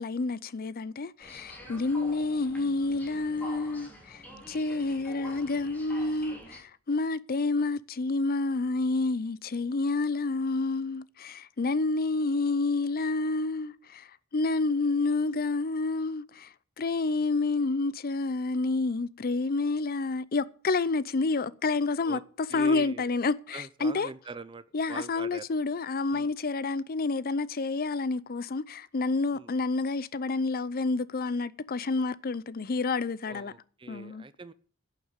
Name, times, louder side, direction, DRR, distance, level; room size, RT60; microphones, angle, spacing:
voice 1, 0.0-24.1 24.7-33.5 33.9-34.2, left 3 dB, 45° left, 0.6 m, -29 dB
sound 1, 1.2-6.6, equal, 10° left, 3.2 m, -47 dB
voice 2, 22.5-23.0 23.5-25.5 26.1-26.3 29.3-29.5 33.3-34.5, right 3 dB, 25° right, 0.5 m, -42 dB
11.5 x 6.7 x 8.9 m
head